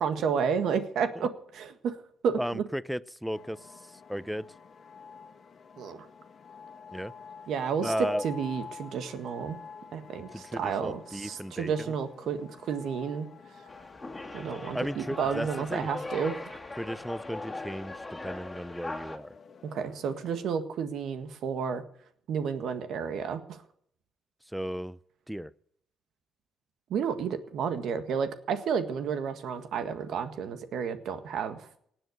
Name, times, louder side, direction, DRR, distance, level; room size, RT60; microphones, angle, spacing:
voice 1, 0.0-2.0 2.2-2.6 5.8-6.1 7.5-7.9 8.2-9.6 9.9-13.3 14.3-16.6 19.6-21.8 22.3-23.6 26.9-31.7, right 6 dB, 75° right, 9 dB, 1.7 m, -31 dB
voice 2, 2.4-4.5 6.9-7.1 7.8-8.3 10.3-11.9 14.7-15.9 16.8-19.3 24.5-25.0 25.3-25.5, equal, ahead, 19 dB, 0.6 m, -35 dB
sound 1, 3.3-20.5, left 6 dB, 50° left, 1.6 m, -49 dB
sound 2, 13.7-19.2, left 2 dB, 15° left, 2.3 m, -40 dB
18.5 x 7.9 x 8.0 m, 0.68 s
cardioid pair, 90°, 0 cm